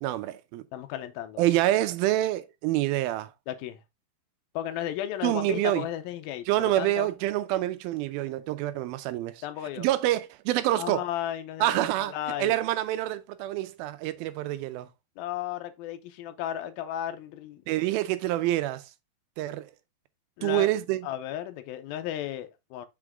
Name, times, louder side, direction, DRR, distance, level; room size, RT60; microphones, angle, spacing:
voice 1, 0.0-0.6 1.4-3.3 5.2-5.9 6.5-9.4 9.8-11.0 11.6-14.9 17.7-18.8 19.4-19.7 20.4-21.1, right 15 dB, 85° right, 2.5 m, -27 dB
voice 2, 0.7-1.4 3.5-3.8 4.5-7.1 9.4-9.9 10.8-12.6 15.2-17.6 20.4-20.7 21.0-22.9, left 12 dB, 85° left, 2.6 m, -34 dB
6.0 x 4.9 x 3.5 m
omnidirectional pair, 4.3 m